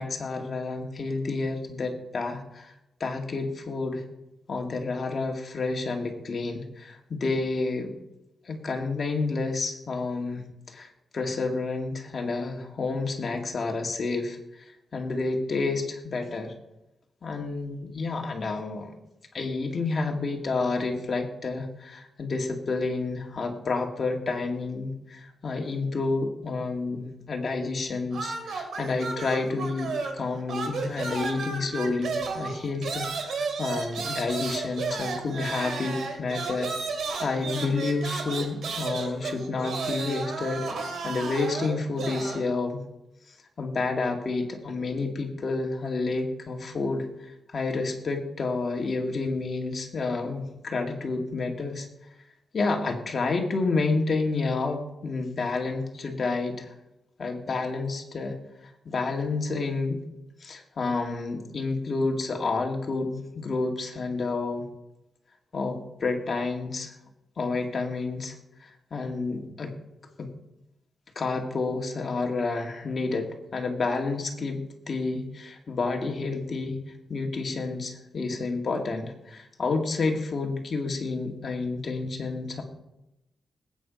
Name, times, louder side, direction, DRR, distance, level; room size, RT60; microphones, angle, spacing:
voice 1, 0.0-2.7 3.0-4.0 4.5-7.9 8.5-16.5 17.2-18.9 19.3-36.7 37.2-42.8 43.6-47.1 47.5-51.9 52.5-56.7 57.2-58.4 58.9-60.0 60.4-64.7 65.5-66.9 67.4-68.3 68.6-69.7 70.2-70.3 71.2-76.8 77.1-82.6, left 3 dB, 40° left, 2 dB, 2.2 m, -30 dB
sound 1, 28.1-30.2 30.5-42.4, right 4 dB, 85° right, 2.4 m, -33 dB
19.5 x 9.0 x 5.2 m, 0.91 s
wide cardioid pair, 165°, 0 cm